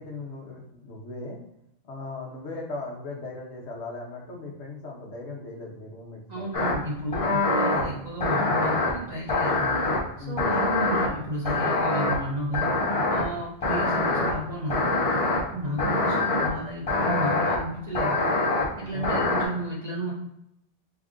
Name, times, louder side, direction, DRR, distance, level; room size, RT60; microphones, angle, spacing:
voice 1, 0.0-1.4 1.8-6.7 10.2-10.5 15.6-15.9 18.9-19.3, left 3 dB, 70° left, -1 dB, 1.0 m, -38 dB
voice 2, 6.3-9.7 10.2-12.7 13.1-14.9 15.4-18.2 18.8-20.1, right 1 dB, 35° right, -5 dB, 1.0 m, -32 dB
sound 1, 6.5-6.7 7.1-7.8 8.2-8.9 9.3-10.0 10.4-11.1 11.5-12.2 12.5-13.2 13.6-14.3 14.7-15.4 15.8-16.5 16.9-17.6 17.9-18.6 19.0-19.5, left 3 dB, 35° left, 0.7 m, -24 dB
3.4 x 2.5 x 3.6 m, 0.77 s
omnidirectional pair, 1.2 m